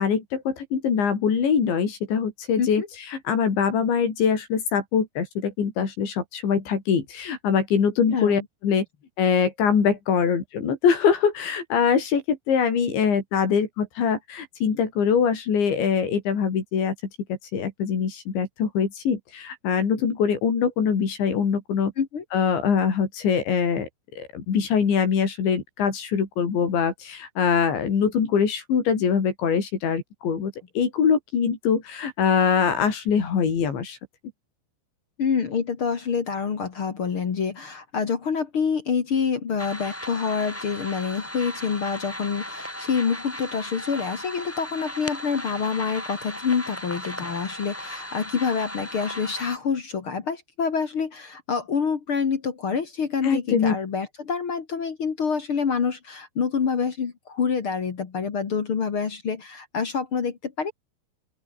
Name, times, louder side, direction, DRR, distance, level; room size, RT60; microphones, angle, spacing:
voice 1, 0.0-2.8 3.1-8.8 9.2-17.0 17.5-21.9 22.3-23.9 24.2-34.0 53.2-53.8, left 6 dB, 70° left, 6.9 m, -23 dB
voice 2, 8.1-8.4 22.0-22.2 35.2-60.7, left 6 dB, 50° left, 1.6 m, -27 dB
sound 1, 39.6-49.6, equal, 5° left, 5.4 m, -36 dB
open air
omnidirectional pair, 5.4 m